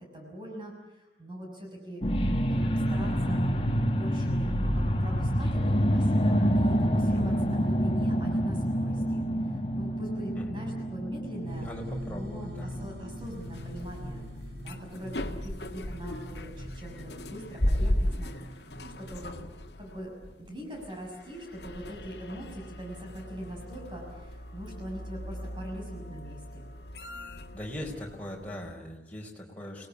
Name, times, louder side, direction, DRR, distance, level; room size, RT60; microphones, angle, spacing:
voice 1, 0.1-2.0 2.5-3.5 3.9-11.7 12.1-14.2 14.6-19.3 19.8-20.1 20.4-26.6, equal, 25° right, -1 dB, 6.4 m, -42 dB
sound 1, 2.0-14.7 15.2-15.3, equal, 30° left, 1.8 m, -28 dB
voice 2, 10.4-10.7 11.6-12.8 27.5-29.9, equal, 10° left, -1 dB, 4.7 m, -40 dB
sound 2, 11.5-19.1, equal, 65° right, 3.2 m, -44 dB
sound 3, 13.2-28.7, left 1 dB, 75° left, 1.8 m, -36 dB
30.0 x 19.0 x 8.6 m, 0.98 s
head